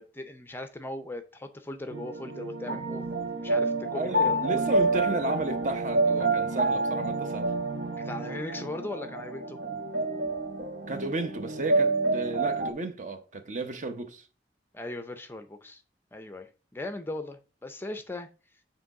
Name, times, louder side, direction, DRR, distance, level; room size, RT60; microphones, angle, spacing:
voice 1, 0.0-3.0 3.4-4.5 8.0-9.6 14.7-15.8 16.1-18.3, left 1 dB, 10° left, 0.5 m, -39 dB
sound 1, 1.9-12.7, right 2 dB, 70° right, 0.9 m, -28 dB
voice 2, 3.9-7.5 10.9-14.2, right 2 dB, 45° right, 0.8 m, -33 dB
7.8 x 3.0 x 4.7 m
head